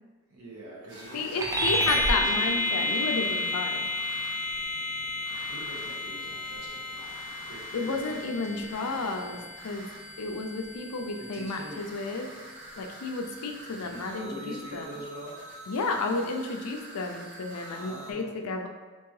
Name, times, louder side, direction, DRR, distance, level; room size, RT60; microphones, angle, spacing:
voice 1, 0.3-1.3 1.8-3.1 5.3-7.1 7.5-9.5 11.2-11.9 13.7-15.4 17.7-18.6, right 1 dB, 85° right, -4 dB, 1.1 m, -44 dB
sound 1, 0.9-18.1, right 1 dB, 55° right, 0.8 m, -45 dB
voice 2, 1.1-3.9 7.7-9.4 9.6-9.9 10.2-12.3 12.8-14.9 15.7-18.7, left 3 dB, 90° left, 4 dB, 0.5 m, -32 dB
sound 2, 1.4-11.2, left 1 dB, 15° right, 0.4 m, -31 dB
3.5 x 2.9 x 3.2 m, 1.4 s
head